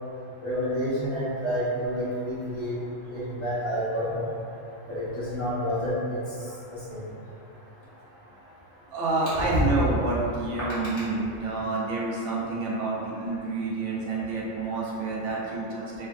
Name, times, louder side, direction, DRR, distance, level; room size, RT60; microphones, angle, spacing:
voice 1, 0.4-2.8 3.1-4.3 4.9-7.0 9.2-9.6, equal, 20° left, -13 dB, 0.4 m, -29 dB
voice 2, 8.9-16.1, right 3 dB, 80° right, -5 dB, 0.9 m, -28 dB
3.2 x 2.2 x 2.4 m, 2.4 s
omnidirectional pair, 1.2 m